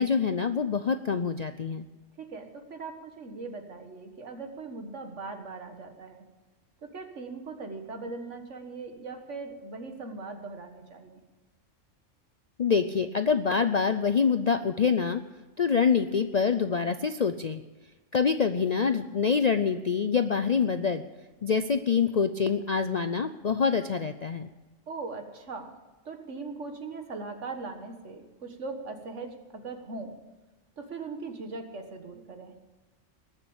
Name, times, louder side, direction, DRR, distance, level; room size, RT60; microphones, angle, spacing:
voice 1, 0.0-1.9 12.6-15.2 15.6-17.6 18.1-21.0 21.4-24.5, left 6 dB, 50° left, 9 dB, 0.5 m, -25 dB
voice 2, 2.2-6.2 6.8-11.2 24.9-25.7 26.1-30.2 30.8-32.5, right 3 dB, 65° right, 6 dB, 1.9 m, -40 dB
20.0 x 7.2 x 8.7 m, 1.2 s
omnidirectional pair, 1.3 m